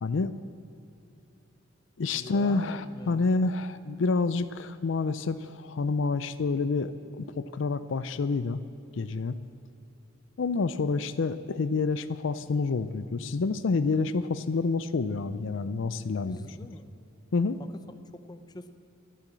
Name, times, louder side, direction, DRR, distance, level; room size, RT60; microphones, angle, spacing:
voice 1, 0.0-0.3 2.0-8.6 8.9-9.4 10.4-16.5 17.3-17.6, left 4 dB, 70° left, 13 dB, 0.5 m, -28 dB
voice 2, 2.1-3.3 16.3-16.9 18.1-18.7, left 1 dB, 20° left, 9 dB, 0.7 m, -44 dB
13.5 x 12.0 x 7.5 m, 2.9 s
head